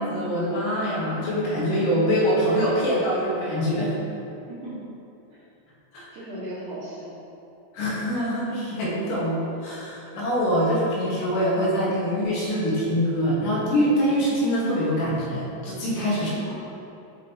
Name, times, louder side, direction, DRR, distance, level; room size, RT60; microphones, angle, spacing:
voice 1, 0.0-4.0 5.9-6.1 7.7-16.3, equal, 70° left, -6 dB, 2.7 m, -24 dB
voice 2, 4.5-4.8 5.3-5.4 6.1-7.1 15.9-16.5, right 1 dB, 60° right, -14 dB, 2.2 m, -36 dB
6.9 x 5.1 x 2.7 m, 2.7 s
omnidirectional pair, 4.2 m